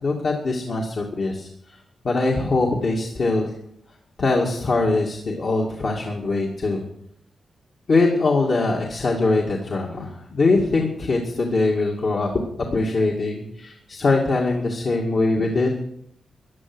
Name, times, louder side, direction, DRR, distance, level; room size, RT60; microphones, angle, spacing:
voice 1, 0.0-1.8 2.0-3.5 4.2-6.8 7.9-12.3 12.7-15.8, left 3 dB, 50° left, -2 dB, 2.2 m, -22 dB
15.5 x 11.0 x 6.1 m, 0.70 s
wide cardioid pair, 125°, 0 cm